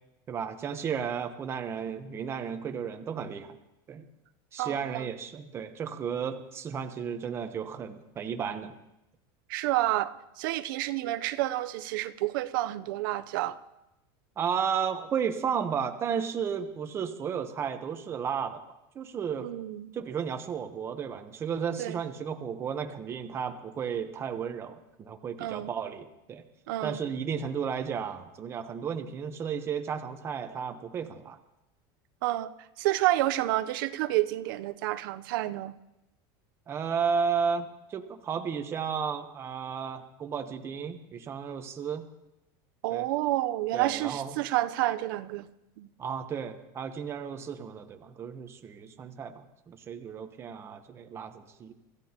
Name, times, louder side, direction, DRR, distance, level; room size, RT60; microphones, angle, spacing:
voice 1, 0.3-3.6 3.9-4.1 4.5-8.8 14.4-18.6 18.9-19.5 19.9-26.4 26.8-31.4 36.7-42.1 42.9-43.1 43.7-44.3 46.0-51.7, right 7 dB, 20° right, 7 dB, 0.9 m, -33 dB
voice 2, 4.6-5.0 9.5-13.6 19.4-19.9 21.8-22.0 25.4-25.7 26.7-27.0 32.2-32.5 32.8-35.7 42.8-45.5 45.8-45.9, right 16 dB, 70° right, 12 dB, 0.7 m, -29 dB
25.5 x 15.0 x 2.9 m, 0.91 s
supercardioid pair, 160°, 12 cm